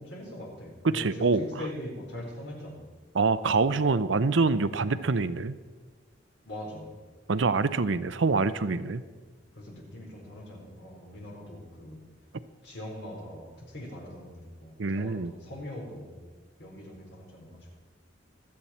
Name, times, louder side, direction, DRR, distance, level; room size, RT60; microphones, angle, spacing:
voice 1, 0.0-2.8 6.5-6.9 9.6-12.0 12.6-16.2 16.6-17.8, left 1 dB, 65° left, -1 dB, 4.2 m, -42 dB
voice 2, 0.8-1.5 3.1-5.6 7.3-9.0 14.8-15.3, right 4 dB, 90° right, 13 dB, 0.7 m, -25 dB
25.5 x 8.6 x 4.3 m, 1.4 s
head